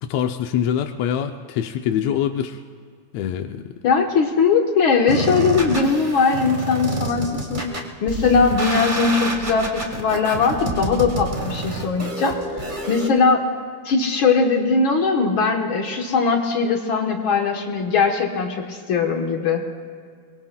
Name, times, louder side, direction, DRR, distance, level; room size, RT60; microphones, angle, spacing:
voice 1, 0.0-2.6 3.1-3.7, left 9 dB, 80° left, 6 dB, 1.5 m, -24 dB
voice 2, 3.8-7.6 8.0-12.3 12.9-13.4 13.8-19.6, left 4 dB, 65° left, 2 dB, 1.3 m, -20 dB
sound 1, 5.1-13.1, right 2 dB, 45° right, 0.6 m, -28 dB
24.0 x 22.0 x 2.2 m, 2.1 s
omnidirectional pair, 3.6 m